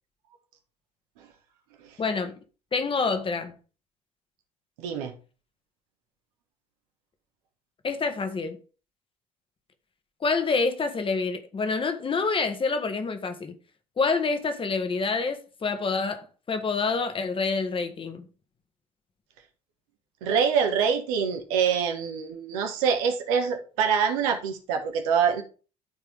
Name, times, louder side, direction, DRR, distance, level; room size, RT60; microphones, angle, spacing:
voice 1, 2.0-2.3 2.7-3.5 7.8-8.6 10.2-13.5 14.0-18.2, left 4 dB, 25° left, 1.5 m, -27 dB
voice 2, 4.8-5.1 20.2-25.4, right 7 dB, 65° right, 1.7 m, -25 dB
12.5 x 4.5 x 3.6 m
figure-of-eight pair, 60°, 19 cm